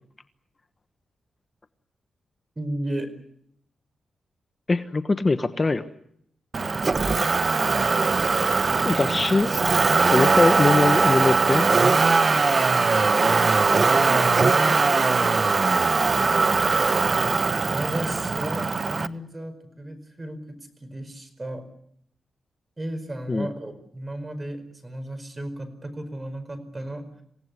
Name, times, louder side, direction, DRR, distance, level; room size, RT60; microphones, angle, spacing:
voice 1, 2.5-3.1 13.8-14.3 14.9-15.5 17.6-21.6 22.8-27.2, right 1 dB, 25° right, 10 dB, 5.0 m, -34 dB
voice 2, 4.7-5.8 8.8-9.5 10.1-11.7 23.3-23.5, left 3 dB, 30° left, 10 dB, 1.1 m, -22 dB
Motor vehicle (road), 6.5-19.1, right 4 dB, 40° right, 1.0 m, -21 dB
27.5 x 17.0 x 9.6 m, 0.73 s
cardioid pair, 95°, 0 cm